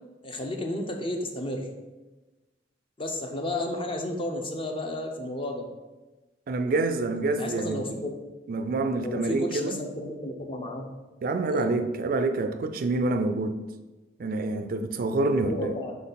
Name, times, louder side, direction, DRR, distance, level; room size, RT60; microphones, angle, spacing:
voice 1, 0.2-1.7 3.0-5.7 7.3-8.1 9.0-10.9 11.5-11.7 15.4-15.9, left 1 dB, 30° left, 3 dB, 0.7 m, -32 dB
voice 2, 6.5-7.9 8.5-9.8 11.2-13.6 14.2-15.7, right 2 dB, 55° right, 8 dB, 0.4 m, -27 dB
5.9 x 4.1 x 3.9 m, 1.2 s
head